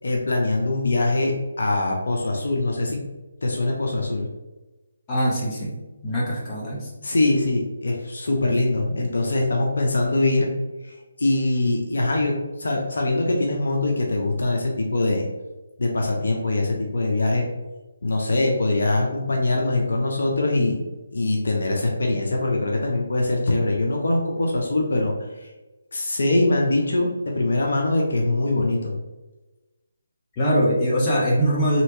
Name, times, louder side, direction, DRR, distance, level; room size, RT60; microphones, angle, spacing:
voice 1, 0.0-3.0 3.4-4.3 7.0-10.5 10.8-15.3 15.8-17.5 18.0-20.9 21.1-25.5 25.9-29.0, left 2 dB, 65° left, 0 dB, 0.6 m, -23 dB
voice 2, 5.1-5.7 6.0-6.9 30.4-31.8, equal, 25° left, -5 dB, 0.9 m, -22 dB
3.2 x 2.9 x 2.7 m, 1.1 s
figure-of-eight pair, 150°, 0 cm